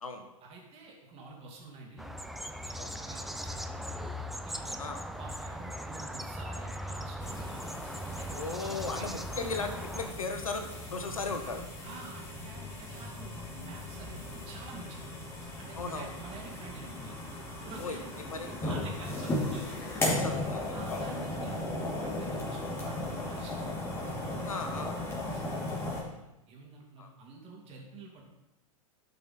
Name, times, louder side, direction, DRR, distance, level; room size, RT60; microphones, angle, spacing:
voice 1, 0.4-2.1 2.7-4.1 4.4-4.8 5.2-8.3 8.6-9.6 11.8-15.2 15.5-17.3 17.6-18.0 18.7-19.8 20.2-20.4 20.7-23.9 24.5-24.9 25.2-28.2, right 4 dB, 35° right, -1 dB, 2.8 m, -49 dB
sound 1, 2.0-10.1, equal, ahead, 0.5 m, -39 dB
sound 2, 7.2-26.0, left 1 dB, 15° left, 2.5 m, -37 dB
voice 2, 8.3-10.6 10.9-11.6 15.8-16.1 17.8-18.8 20.0-21.0 24.4-25.0 27.0-27.1, left 4 dB, 85° left, 6 dB, 1.2 m, -37 dB
11.5 x 5.6 x 4.4 m, 0.93 s
hypercardioid pair, 105°, 18 cm